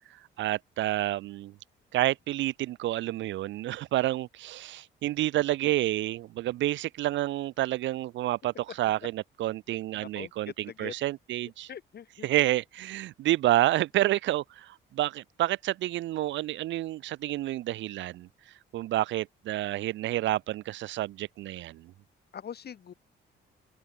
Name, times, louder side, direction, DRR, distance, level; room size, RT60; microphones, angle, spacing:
voice 1, 0.4-1.5 1.9-11.7 12.2-18.3 18.7-21.9, right 15 dB, 70° right, 0.4 m, -29 dB
voice 2, 9.9-10.3 10.7-10.9 11.7-12.3 22.3-22.9, left 8 dB, 55° left, 3.1 m, -42 dB
cardioid pair, 90°, 20 cm